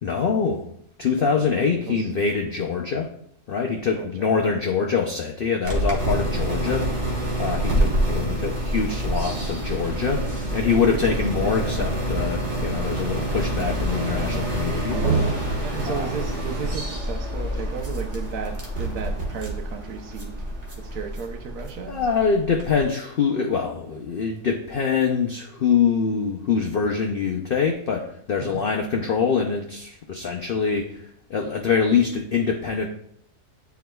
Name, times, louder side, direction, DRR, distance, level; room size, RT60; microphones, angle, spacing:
voice 1, 0.0-0.6 1.0-3.1 3.5-6.9 7.4-10.2 10.5-15.0 15.9-16.1 21.9-32.9, left 6 dB, 75° left, 1 dB, 0.5 m, -24 dB
voice 2, 1.1-2.1 3.9-4.3 7.6-7.9 10.9-11.6 15.6-20.4 20.8-22.0 28.4-28.6, right 6 dB, 80° right, 5 dB, 1.3 m, -35 dB
sound 1, 5.6-22.9, right 1 dB, 50° right, 1.5 m, -27 dB
sound 2, 6.2-16.7, right 1 dB, 30° right, 0.7 m, -39 dB
9.4 x 4.6 x 2.2 m, 0.70 s
omnidirectional pair, 1.6 m